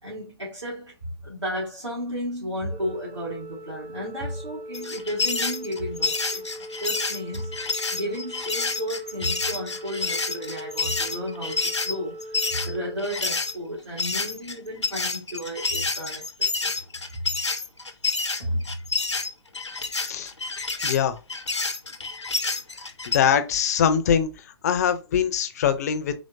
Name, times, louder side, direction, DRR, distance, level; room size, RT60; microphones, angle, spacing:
voice 1, 0.0-6.5 6.8-16.7 17.1-17.2 18.4-18.7, equal, 90° right, 1.9 m, -33 dB
Organ, 2.7-13.8, equal, 15° right, 0.5 m, -41 dB
sound 1, 4.7-13.5 14.0-23.2, left 4 dB, 80° left, 0.6 m, -28 dB
voice 2, 20.8-21.2 23.1-24.3 24.6-26.1, left 8 dB, 35° left, 0.5 m, -22 dB
4.0 x 3.0 x 2.5 m
figure-of-eight pair, 125°, 14 cm